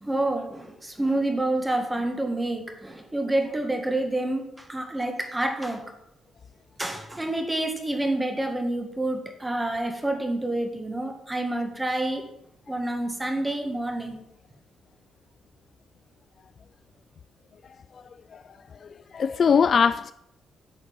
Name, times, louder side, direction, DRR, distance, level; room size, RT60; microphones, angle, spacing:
voice 1, 0.0-5.8 6.8-12.2 12.7-14.2, right 1 dB, 10° right, 1.8 m, -28 dB
voice 2, 18.8-20.1, left 6 dB, 40° left, 0.3 m, -22 dB
9.8 x 6.7 x 8.7 m
cardioid pair, 155°, 0 cm